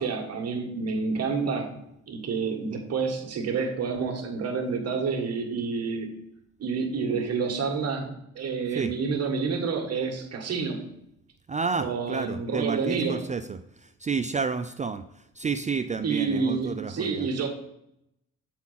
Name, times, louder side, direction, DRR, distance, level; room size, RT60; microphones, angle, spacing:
voice 1, 0.0-1.8 2.1-6.1 6.6-10.9 11.8-13.3 16.0-17.5, right 5 dB, 55° right, 3 dB, 1.7 m, -29 dB
voice 2, 11.5-15.0 15.4-17.2, right 5 dB, 25° right, 10 dB, 0.4 m, -30 dB
8.1 x 4.3 x 5.7 m, 0.79 s
cardioid pair, 90°, 30 cm